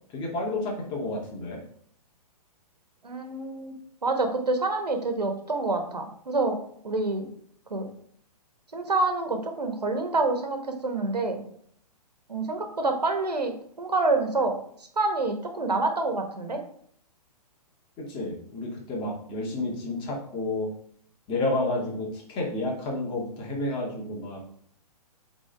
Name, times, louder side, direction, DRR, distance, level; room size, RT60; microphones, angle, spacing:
voice 1, 0.1-1.6 18.0-20.7 21.3-24.4, left 2 dB, 25° left, -2 dB, 2.1 m, -30 dB
voice 2, 3.0-3.8 4.0-6.6 6.8-7.3 7.7-7.9 8.7-11.4 12.3-14.6 15.0-16.6, right 3 dB, 85° right, 5 dB, 1.3 m, -27 dB
8.0 x 4.0 x 3.5 m, 0.63 s
figure-of-eight pair, 125°, 20 cm